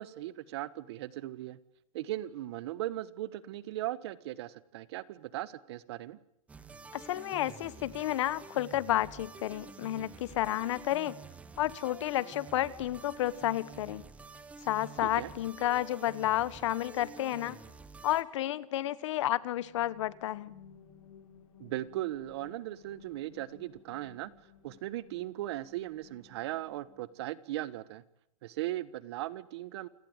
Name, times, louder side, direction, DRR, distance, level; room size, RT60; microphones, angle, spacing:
voice 1, 0.0-1.6 1.9-6.2 15.0-15.3 21.6-24.3 24.6-28.0 28.4-29.9, right 15 dB, 50° right, 18 dB, 1.4 m, -38 dB
sound 1, 6.5-18.2, right 4 dB, 5° right, 1.4 m, -49 dB
voice 2, 6.9-11.1 11.6-14.0 14.6-17.6 18.0-20.5, left 14 dB, 55° left, 19 dB, 1.4 m, -31 dB
sound 2, 19.5-27.3, left 7 dB, 80° left, 7.6 m, -58 dB
29.0 x 18.0 x 9.0 m, 0.77 s
supercardioid pair, 165°, 18 cm